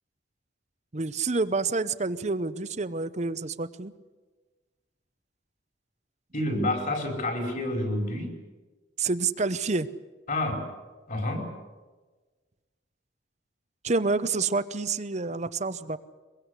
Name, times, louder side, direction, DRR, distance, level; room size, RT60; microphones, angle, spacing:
voice 1, 0.9-3.9 9.0-9.9 13.8-16.0, right 3 dB, 40° right, 14 dB, 0.8 m, -28 dB
voice 2, 6.3-8.4 10.3-10.7 11.1-11.5, left 1 dB, 50° left, 3 dB, 5.3 m, -29 dB
23.0 x 22.5 x 8.3 m, 1.3 s
head